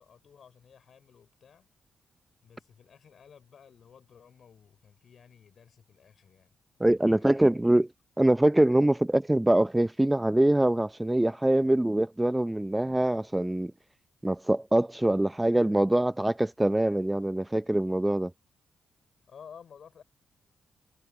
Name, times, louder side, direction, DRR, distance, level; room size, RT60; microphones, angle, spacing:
voice 1, 0.0-1.7 2.4-6.5 7.0-7.4 19.3-20.0, left 7 dB, 65° left, 4.7 m, -54 dB
voice 2, 6.8-7.9 8.2-13.7 14.2-18.3, right 1 dB, 15° right, 0.6 m, -24 dB
supercardioid pair, 45°, 0 cm